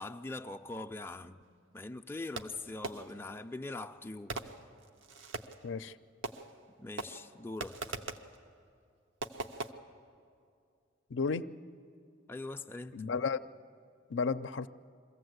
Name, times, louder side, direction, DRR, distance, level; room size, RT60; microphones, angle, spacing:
voice 1, 0.0-1.4 1.7-4.4 6.8-7.8 12.3-13.0, left 2 dB, 10° left, 0.4 m, -42 dB
Fireworks, 2.4-3.3 4.3-5.7 6.2-6.7 7.0-8.4 9.2-9.7, right 3 dB, 85° right, 0.8 m, -41 dB
voice 2, 5.6-5.9 11.1-11.4 12.9-13.4 14.1-14.7, left 5 dB, 75° left, 0.5 m, -32 dB
23.0 x 15.0 x 8.0 m
head